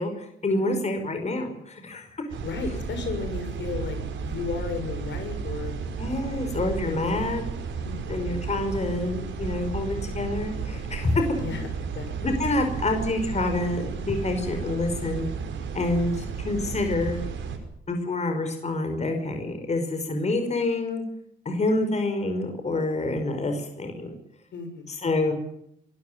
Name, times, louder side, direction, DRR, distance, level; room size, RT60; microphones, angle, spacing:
voice 1, 0.0-2.3 6.0-7.5 8.1-11.5 12.2-15.3 15.7-17.2 17.9-21.0 21.5-24.1 24.9-25.3, left 2 dB, 35° left, 5 dB, 5.4 m, -27 dB
sound 1, 2.3-17.6, right 5 dB, 70° right, 5.5 m, -33 dB
voice 2, 2.4-5.7 6.8-7.0 7.8-8.5 11.4-11.7 11.9-12.3 24.5-25.0, left 5 dB, 65° left, 7 dB, 6.2 m, -34 dB
24.0 x 14.0 x 9.4 m, 0.76 s
cardioid pair, 90°, 20 cm